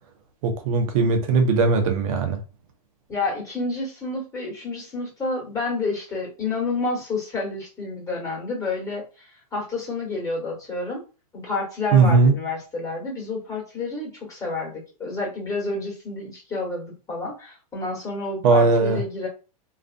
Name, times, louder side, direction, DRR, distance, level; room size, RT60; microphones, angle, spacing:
voice 1, 0.4-2.4 11.9-12.3 18.4-19.0, right 4 dB, 60° right, 0.8 m, -18 dB
voice 2, 3.1-9.0 9.5-11.0 11.3-19.3, left 3 dB, 15° left, 1.2 m, -29 dB
2.4 x 2.4 x 2.5 m
hypercardioid pair, 120°, 20 cm